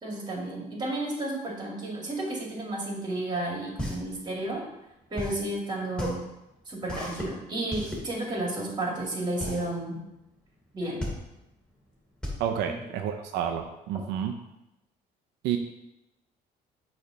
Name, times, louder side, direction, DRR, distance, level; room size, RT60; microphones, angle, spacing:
voice 1, 0.0-4.6 5.1-6.2 6.7-10.0 10.7-11.0 12.7-12.8, right 1 dB, 25° right, -1 dB, 2.3 m, -32 dB
sound 1, 3.3-13.6, equal, 5° left, 2.2 m, -37 dB
voice 2, 12.4-14.3 15.4-15.6, right 9 dB, 90° right, 5 dB, 0.5 m, -30 dB
6.6 x 3.3 x 5.8 m, 0.91 s
cardioid pair, 110°, 17 cm